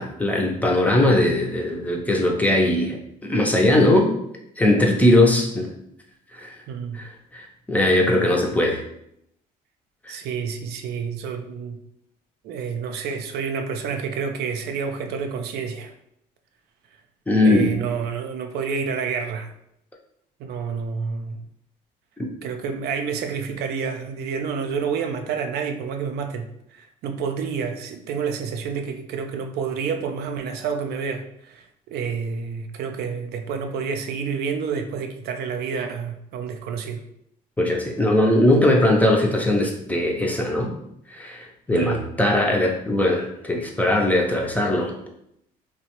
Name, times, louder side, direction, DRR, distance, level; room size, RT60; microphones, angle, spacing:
voice 1, 0.0-3.0 3.2-4.1 4.6-5.7 6.3-6.6 6.9-8.8 10.1-10.2 17.3-17.7 22.2-22.3 37.6-40.7 41.1-44.9, left 1 dB, 10° left, 0 dB, 0.5 m, -20 dB
voice 2, 6.7-7.0 10.1-11.8 12.4-15.9 17.4-19.5 20.4-21.4 22.4-37.0 41.7-42.0, right 6 dB, 70° right, 5 dB, 0.4 m, -29 dB
2.9 x 2.1 x 2.9 m, 0.75 s
cardioid pair, 110°, 17 cm